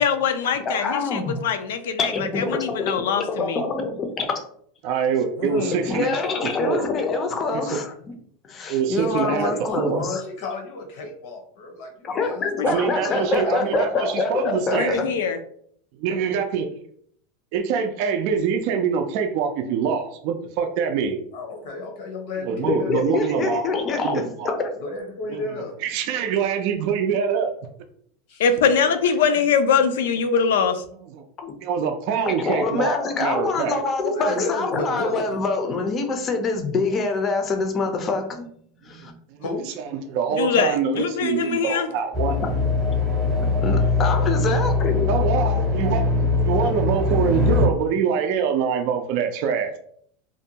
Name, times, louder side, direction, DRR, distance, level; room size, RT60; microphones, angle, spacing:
voice 1, 0.0-3.6 12.6-12.7 14.8-15.4 28.4-30.8 40.3-41.9, left 6 dB, 85° left, 9 dB, 0.4 m, -22 dB
voice 2, 0.7-1.4 2.0-4.4 5.9-8.1 8.4-10.2 12.0-15.1 22.6-24.8 31.4-31.5 32.3-38.5 38.8-39.1 43.6-45.2, left 3 dB, 30° left, 5 dB, 0.5 m, -25 dB
voice 3, 4.8-6.9 7.5-7.8 8.7-9.5 9.8-10.0 12.6-15.0 16.0-16.7 17.5-21.2 22.4-23.7 24.0-24.5 25.3-25.4 25.8-27.5 30.4-30.5 31.1-31.2 31.6-33.8 39.3-39.4 39.9-42.4 45.1-46.1 46.4-49.8, right 6 dB, 55° right, 5 dB, 0.3 m, -24 dB
voice 4, 5.4-6.0 9.0-9.6 10.0-13.6 21.3-23.1 24.8-25.8 28.3-28.9 34.0-35.4 39.4-39.7, left 2 dB, 65° left, 3 dB, 0.7 m, -32 dB
sound 1, 42.1-47.7, left 3 dB, 20° right, 0.7 m, -21 dB
2.5 x 2.2 x 2.7 m, 0.63 s
supercardioid pair, 135°, 0 cm